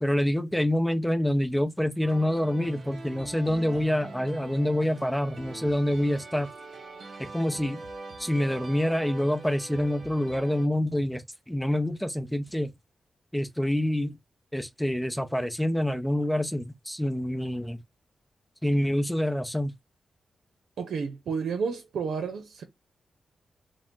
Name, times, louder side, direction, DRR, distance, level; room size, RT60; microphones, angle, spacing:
voice 1, 0.0-6.5 7.3-7.8 8.2-12.7 13.3-14.2 14.5-17.8 18.6-19.7, left 1 dB, 5° left, 0.6 m, -26 dB
sound 1, 2.0-10.7, right 3 dB, 60° right, 1.1 m, -43 dB
voice 2, 20.8-22.6, right 5 dB, 90° right, 0.6 m, -31 dB
4.8 x 2.1 x 3.7 m
wide cardioid pair, 110°, 0 cm